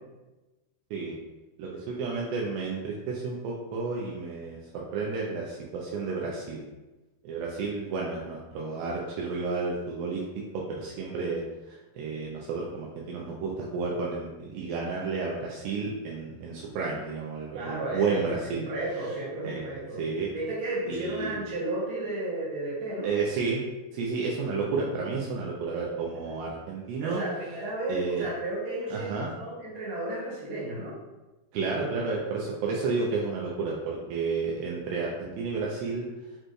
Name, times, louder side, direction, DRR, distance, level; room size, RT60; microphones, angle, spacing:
voice 1, 1.6-6.6 7.2-18.7 19.4-19.6 20.0-20.3 20.9-21.4 23.0-23.6 23.9-27.2 27.9-28.3 28.9-29.3 31.5-36.1, right 4 dB, 80° right, -3 dB, 2.3 m, -31 dB
voice 2, 17.5-20.0 20.3-23.1 27.0-31.0, right 2 dB, 55° right, -7 dB, 2.4 m, -33 dB
7.5 x 3.1 x 2.2 m, 1.1 s
omnidirectional pair, 4.3 m